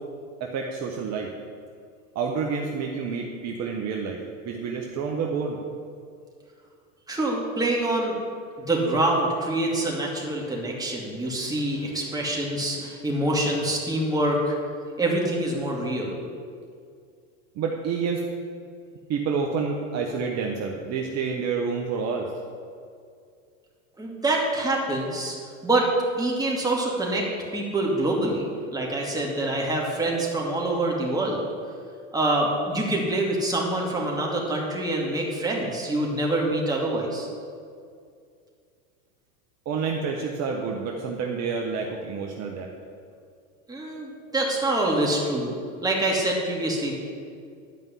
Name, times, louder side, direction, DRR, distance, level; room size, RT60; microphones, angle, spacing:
voice 1, 0.4-1.3 2.1-5.6 17.5-18.2 19.1-22.3 39.6-42.7, right 5 dB, 40° right, 1 dB, 1.2 m, -28 dB
voice 2, 7.1-8.2 8.6-14.5 15.0-16.2 24.0-25.4 25.6-25.9 26.2-31.4 32.1-37.3 43.7-45.5 45.8-46.9, right 1 dB, 10° right, -2 dB, 2.5 m, -25 dB
11.0 x 5.4 x 8.2 m, 2.3 s
hypercardioid pair, 105°, 40 cm